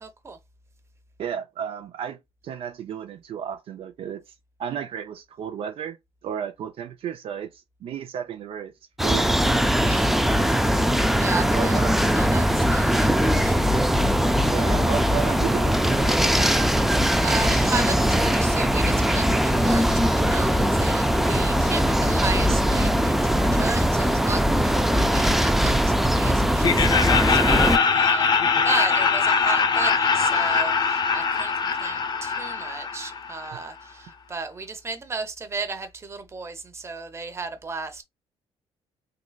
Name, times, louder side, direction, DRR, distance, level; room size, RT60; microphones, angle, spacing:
voice 1, 0.0-0.4 9.8-13.8 17.2-28.4 28.6-38.0, right 4 dB, 25° right, 0.8 m, -34 dB
voice 2, 1.2-4.2 4.6-6.0 6.2-8.7 9.0-9.4 11.5-11.9 13.8-14.0 14.5-16.7, right 9 dB, 60° right, 0.5 m, -33 dB
sound 1, 9.0-27.8, equal, 5° right, 0.3 m, -21 dB
Laughter, 26.6-33.6, left 5 dB, 45° left, 0.6 m, -22 dB
3.8 x 3.1 x 2.3 m
cardioid pair, 110°, 11 cm